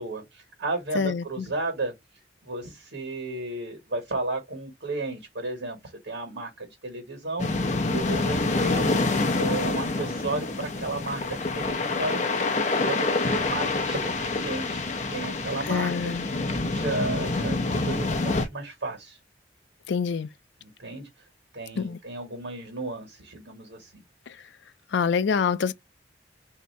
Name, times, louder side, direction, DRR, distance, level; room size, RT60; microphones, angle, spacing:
voice 1, 0.0-1.9 2.4-5.8 6.0-7.5 7.8-8.9 9.3-16.1 16.5-19.2 20.6-21.1 21.5-24.0, right 2 dB, 80° right, 1.3 m, -33 dB
voice 2, 0.9-1.5 15.7-16.3 19.9-20.3 21.8-22.0 24.9-25.7, left 6 dB, 70° left, 0.4 m, -26 dB
sound 1, 7.4-18.5, left 3 dB, 40° left, 0.6 m, -27 dB
3.2 x 2.8 x 4.1 m
head